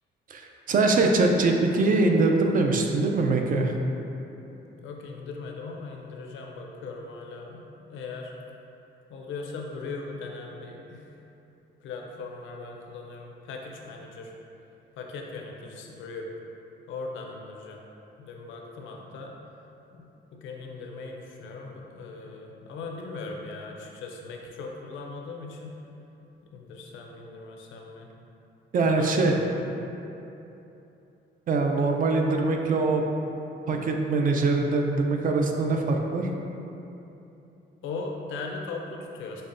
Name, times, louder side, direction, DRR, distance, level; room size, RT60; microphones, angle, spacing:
voice 1, 0.3-3.8 28.7-29.3 31.5-33.0 33.7-36.3, right 3 dB, 45° right, 2 dB, 0.4 m, -23 dB
voice 2, 4.8-8.3 9.1-11.0 11.8-14.3 15.0-16.3 16.9-17.8 18.2-19.3 19.9-25.8 26.5-28.1 28.8-29.9 37.8-39.4, left 3 dB, 75° left, 0 dB, 0.5 m, -39 dB
5.3 x 2.1 x 2.5 m, 2.9 s
cardioid pair, 90°, 20 cm